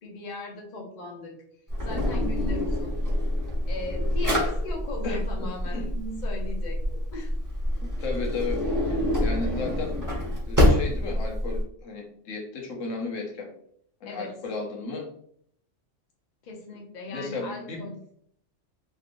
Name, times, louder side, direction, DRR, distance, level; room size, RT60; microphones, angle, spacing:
voice 1, 0.0-1.4 1.8-2.9 3.7-7.3 14.0-14.3 16.4-18.0, left 2 dB, 45° left, 1 dB, 0.8 m, -38 dB
Drawer open or close, 1.7-11.6, left 1 dB, 20° right, 0.8 m, -26 dB
voice 2, 5.0-5.9 8.0-8.6 8.9-10.0 10.5-13.5 14.0-15.1 17.1-17.9, left 3 dB, 85° left, 0 dB, 1.2 m, -34 dB
3.5 x 2.7 x 2.5 m, 0.66 s
omnidirectional pair, 1.3 m